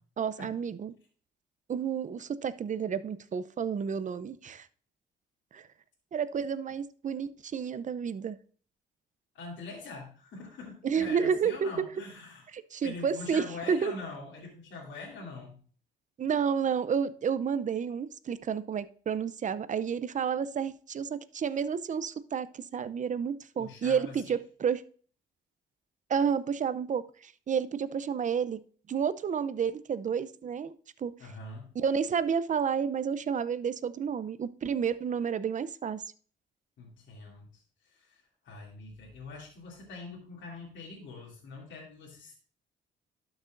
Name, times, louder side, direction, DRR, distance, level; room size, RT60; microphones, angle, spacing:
voice 1, 0.2-0.9 1.7-4.7 5.5-5.7 6.1-8.4 10.8-11.9 12.5-13.9 16.2-24.8 26.1-28.6 28.9-30.7 31.0-31.1 31.7-36.0, right 7 dB, 40° right, 15 dB, 0.6 m, -30 dB
voice 2, 9.3-12.5 12.8-15.6 23.6-24.2 31.2-31.7 36.8-42.4, left 3 dB, 70° left, -4 dB, 2.7 m, -44 dB
12.0 x 6.1 x 2.5 m, 0.44 s
cardioid pair, 90°, 20 cm